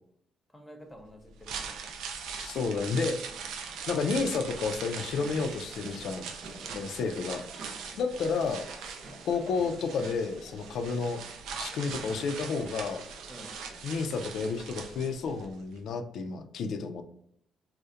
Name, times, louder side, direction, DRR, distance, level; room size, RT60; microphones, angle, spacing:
voice 1, 0.5-2.0 6.6-6.9 7.9-8.0 13.3-13.6, equal, 10° left, 2 dB, 0.6 m, -50 dB
sound 1, 1.2-15.5 15.8-15.9, right 6 dB, 85° right, 0.3 m, -41 dB
voice 2, 2.4-3.2 3.9-6.3 6.7-7.4 8.0-8.6 9.2-11.2 11.6-13.0 13.8-17.0, left 4 dB, 70° left, 7 dB, 0.3 m, -31 dB
sound 2, 3.2-15.5, right 2 dB, 60° right, 0.7 m, -51 dB
2.3 x 2.0 x 2.7 m, 0.70 s
cardioid pair, 90°, 0 cm